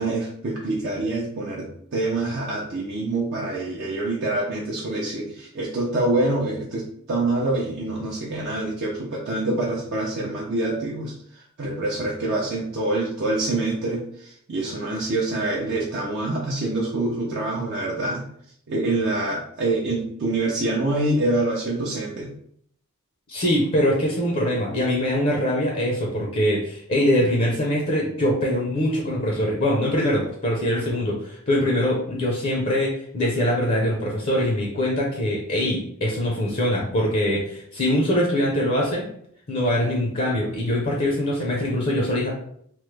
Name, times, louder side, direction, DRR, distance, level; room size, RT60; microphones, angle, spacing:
voice 1, 0.0-18.3 18.7-22.3, right 2 dB, 50° right, -4 dB, 0.5 m, -26 dB
voice 2, 23.3-39.0 39.5-42.3, left 1 dB, 40° left, -2 dB, 0.6 m, -23 dB
3.0 x 2.1 x 3.2 m, 0.67 s
head